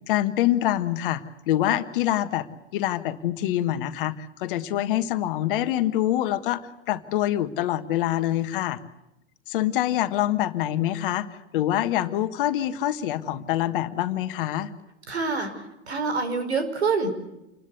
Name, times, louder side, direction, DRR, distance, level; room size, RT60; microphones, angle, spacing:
voice 1, 0.1-2.5 2.7-8.8 9.5-11.3 11.5-14.7, left 13 dB, 50° left, 10 dB, 1.6 m, -25 dB
voice 2, 15.1-17.2, right 4 dB, 70° right, 8 dB, 5.1 m, -26 dB
28.5 x 21.5 x 8.3 m, 0.90 s
figure-of-eight pair, 85°, 34 cm